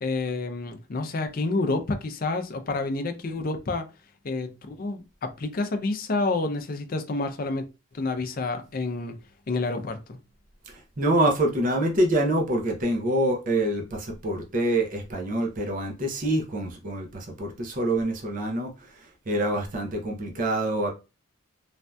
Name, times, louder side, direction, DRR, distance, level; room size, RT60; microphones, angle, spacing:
voice 1, 0.0-3.9 4.2-7.6 7.9-9.1 9.5-10.2, left 3 dB, 40° left, 0.4 m, -29 dB
voice 2, 10.7-19.0 19.3-20.9, right 1 dB, 40° right, 0.6 m, -26 dB
3.2 x 2.6 x 2.2 m
head